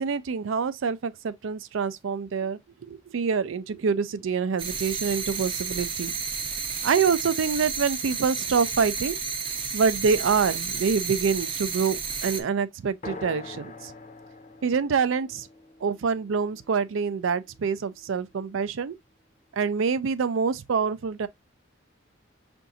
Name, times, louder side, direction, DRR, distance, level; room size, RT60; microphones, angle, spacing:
voice 1, 0.0-6.1 6.8-9.2 9.7-13.9 14.6-15.5 15.8-18.9 19.5-21.3, right 5 dB, 80° right, 0.4 m, -26 dB
sound 1, 4.6-12.4, right 5 dB, 25° right, 0.5 m, -31 dB
sound 2, 13.0-16.9, left 3 dB, 35° left, 0.5 m, -43 dB
5.7 x 2.6 x 2.5 m
head